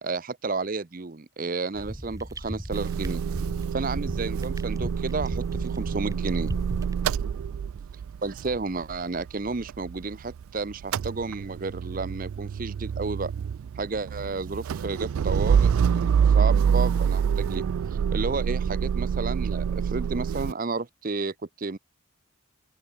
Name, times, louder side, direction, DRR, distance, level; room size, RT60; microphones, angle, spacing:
voice 1, 0.0-3.2 3.7-6.5 8.2-13.3 13.8-17.6 18.1-21.8, right 3 dB, 40° right, 0.7 m, -32 dB
sound 1, 1.7-6.9, equal, 15° right, 1.4 m, -37 dB
Motor vehicle (road) / Engine starting / Idling, 2.7-10.4 10.7-20.5, right 7 dB, 80° right, 0.3 m, -26 dB
open air
head